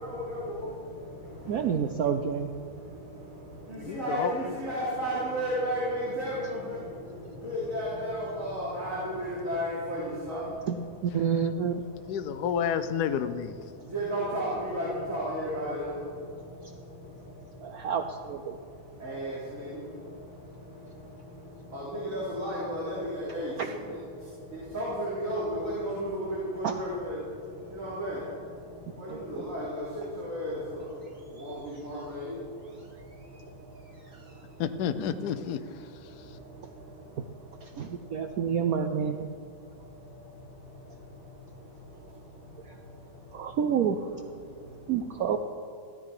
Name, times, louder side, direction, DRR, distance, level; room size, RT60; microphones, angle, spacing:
voice 1, 0.0-12.5 13.6-18.0 18.5-34.7 35.4-43.6 44.2-45.4, equal, 40° right, -9 dB, 3.7 m, -36 dB
voice 2, 1.5-2.5 10.3-10.8 11.0-11.7 17.6-18.6 23.6-23.7 26.6-26.7 29.1-29.2 33.4-33.5 34.1-34.2 37.2-37.3 37.6-39.3 42.7-42.8 43.3-44.1 44.9-45.4, right 7 dB, 70° right, 7 dB, 0.8 m, -29 dB
voice 3, 3.8-4.5 12.1-13.6 34.6-35.6, left 8 dB, 65° left, 10 dB, 1.1 m, -30 dB
15.0 x 13.0 x 4.9 m, 2.3 s
omnidirectional pair, 2.1 m